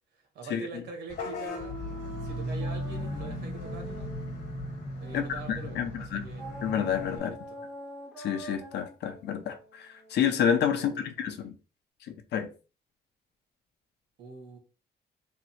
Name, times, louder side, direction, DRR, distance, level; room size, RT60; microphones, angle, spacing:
voice 1, 0.1-1.8 2.2-4.2 5.0-6.5 7.1-7.6 10.7-11.1 14.2-14.6, right 5 dB, 85° right, 1.4 m, -44 dB
Vehicle horn car horn honking / Bus, 1.1-7.2, left 1 dB, 55° left, 1.4 m, -37 dB
sound 1, 1.5-5.6 6.4-11.1, equal, 5° right, 0.9 m, -45 dB
voice 2, 5.1-6.2 6.6-7.3 8.2-11.5 12.1-12.5, left 8 dB, 75° left, 0.7 m, -29 dB
3.6 x 2.0 x 4.2 m
cardioid pair, 165°, 18 cm